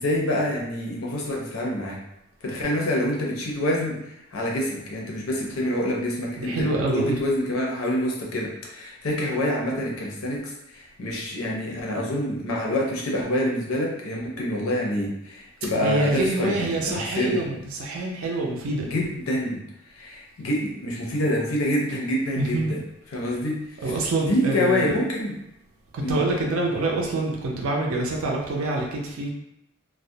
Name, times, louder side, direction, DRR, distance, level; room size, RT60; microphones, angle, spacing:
voice 1, 0.0-2.0 2.4-4.0 4.3-17.4 18.8-19.6 19.9-22.8 23.1-23.6 23.8-23.9 24.2-25.4 26.0-26.2, left 1 dB, 85° left, -2 dB, 0.6 m, -26 dB
voice 2, 6.4-7.2 15.8-18.9 22.4-22.7 23.3-23.4 23.8-24.9 25.9-29.3, right 2 dB, 75° right, -1 dB, 0.5 m, -26 dB
2.3 x 2.0 x 2.7 m, 0.82 s
head